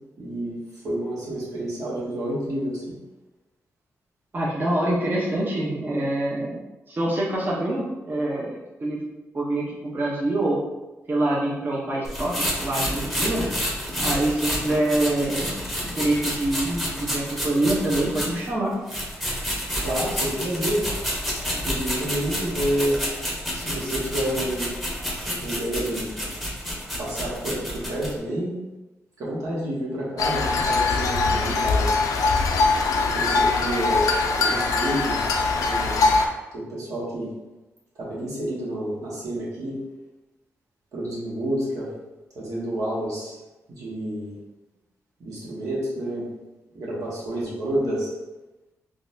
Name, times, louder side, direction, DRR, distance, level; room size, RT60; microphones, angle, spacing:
voice 1, 0.2-0.6 0.8-2.8 19.8-20.8 21.6-23.0 23.5-24.7 25.4-26.1 27.0-28.5 29.2-31.9 33.1-34.1 34.3-35.4 35.7-36.0 36.5-37.3 38.0-39.7 40.9-41.9 42.3-43.3 43.7-44.3 45.2-46.3 46.7-48.1, right 1 dB, 80° right, -6 dB, 1.2 m, -29 dB
voice 2, 4.3-9.0 9.3-10.6 11.1-13.4 14.0-15.5 15.8-18.7, right 1 dB, 35° right, -5 dB, 0.7 m, -25 dB
sound 1, 12.1-18.5 18.9-28.1, equal, ahead, 0.9 m, -29 dB
sound 2, 30.2-36.3, left 3 dB, 80° left, 0.4 m, -22 dB
3.9 x 2.4 x 2.6 m, 1.1 s
cardioid pair, 80°, 6 cm